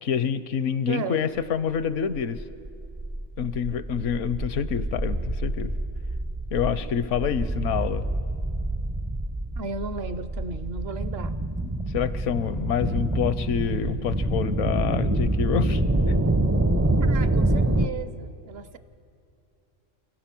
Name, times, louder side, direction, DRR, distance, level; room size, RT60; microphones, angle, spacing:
voice 1, 0.0-2.4 3.4-5.7 6.5-8.0 11.6-15.8, left 8 dB, 70° left, 14 dB, 1.0 m, -27 dB
voice 2, 0.9-1.2 9.6-11.3 17.0-18.8, right 4 dB, 60° right, 12 dB, 0.8 m, -35 dB
sound 1, 1.8-17.9, right 2 dB, 20° right, 0.5 m, -26 dB
29.5 x 16.0 x 6.0 m, 2.6 s
omnidirectional pair, 1.3 m